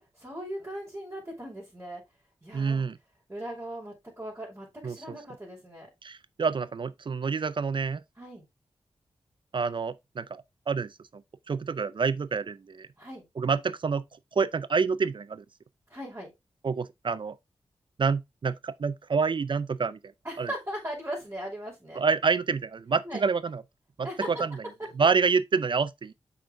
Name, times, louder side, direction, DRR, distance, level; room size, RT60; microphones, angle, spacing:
voice 1, 0.0-2.0 2.4-2.8 3.3-5.9 8.2-8.4 13.0-13.2 15.9-16.3 20.2-22.0 23.0-23.2 24.0-24.3, equal, 25° right, 5.3 m, -38 dB
voice 2, 2.5-3.0 4.8-5.2 6.0-8.0 9.5-10.9 11.5-12.9 13.4-14.0 14.3-15.4 16.6-17.4 18.0-20.0 20.4-20.5 22.0-23.6 24.0-24.6 25.0-26.1, right 5 dB, 55° right, 0.5 m, -27 dB
7.4 x 5.3 x 3.7 m
cardioid pair, 55°, 10 cm